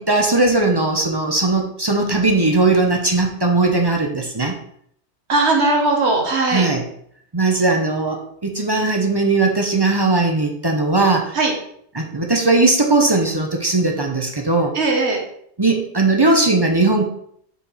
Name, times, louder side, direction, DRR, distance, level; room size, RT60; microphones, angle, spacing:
voice 1, 0.0-4.6 6.4-6.8 7.3-11.3 11.9-14.7 15.6-17.1, right 3 dB, 25° right, 2 dB, 0.7 m, -18 dB
voice 2, 5.3-6.7 11.3-11.5 14.7-15.2, right 2 dB, 75° right, 1 dB, 1.6 m, -18 dB
5.6 x 4.4 x 4.3 m, 0.67 s
omnidirectional pair, 1.1 m